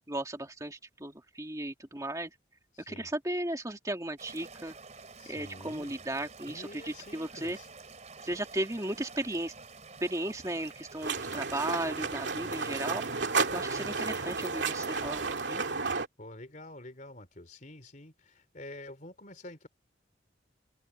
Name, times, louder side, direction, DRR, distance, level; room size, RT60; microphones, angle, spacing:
voice 1, 0.0-2.3 2.9-4.7 5.3-7.6 8.2-9.5 10.0-13.0 13.5-15.2 15.5-15.6, right 1 dB, 20° right, 2.2 m, -35 dB
voice 2, 2.7-3.1 5.2-5.9 6.5-7.7 13.9-14.3 16.2-19.7, left 1 dB, 45° left, 3.6 m, -48 dB
sound 1, 4.2-15.4, right 4 dB, 40° right, 4.0 m, -49 dB
sound 2, 11.0-16.1, right 4 dB, 75° right, 2.4 m, -32 dB
head